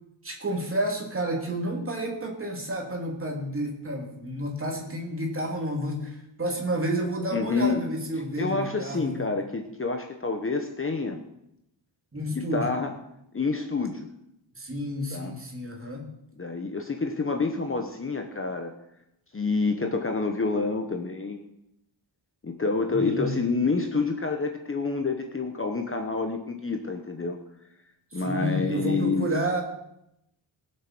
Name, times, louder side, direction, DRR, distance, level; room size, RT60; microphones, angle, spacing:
voice 1, 0.2-9.3 12.1-12.7 14.5-16.1 22.9-23.5 28.1-29.6, equal, 25° right, 0 dB, 3.0 m, -30 dB
voice 2, 7.3-7.8 8.4-11.2 12.3-12.9 13.3-14.1 15.1-15.3 16.4-18.7 19.3-21.5 22.4-27.4 28.1-29.3, left 4 dB, 25° left, 4 dB, 1.0 m, -28 dB
20.0 x 7.9 x 6.1 m, 0.82 s
wide cardioid pair, 175°, 48 cm